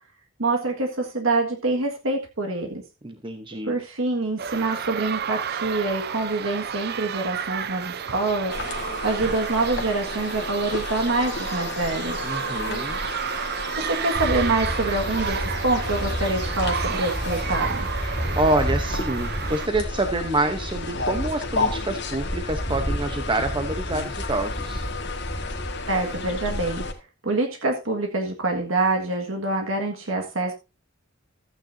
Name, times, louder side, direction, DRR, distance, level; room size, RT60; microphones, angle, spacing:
voice 1, 0.4-2.8 3.7-8.5 9.0-12.2 13.8-17.9 25.9-26.8 27.2-30.5, right 2 dB, 85° right, 3 dB, 1.7 m, -25 dB
voice 2, 3.0-3.8 12.2-13.0 18.4-24.8, right 2 dB, 25° right, 7 dB, 0.8 m, -27 dB
sound 1, 4.4-19.7, right 8 dB, 55° right, 0.6 m, -31 dB
sound 2, 8.5-26.9, left 3 dB, 60° left, 1.7 m, -33 dB
Bird / Wind, 14.1-26.9, equal, 15° left, 3.2 m, -32 dB
14.5 x 9.1 x 2.7 m, 0.27 s
head